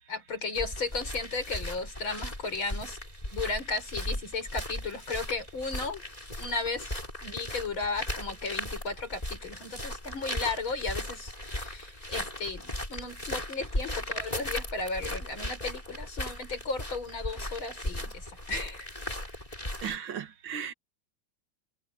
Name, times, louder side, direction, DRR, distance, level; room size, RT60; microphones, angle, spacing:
voice 1, 0.1-3.0 3.3-6.0 6.4-18.9, left 3 dB, 80° left, 6.5 m, -35 dB
sound 1, 0.5-19.9, left 1 dB, 20° left, 5.9 m, -37 dB
voice 2, 19.8-20.7, right 8 dB, 80° right, 2.3 m, -36 dB
omnidirectional pair, 2.2 m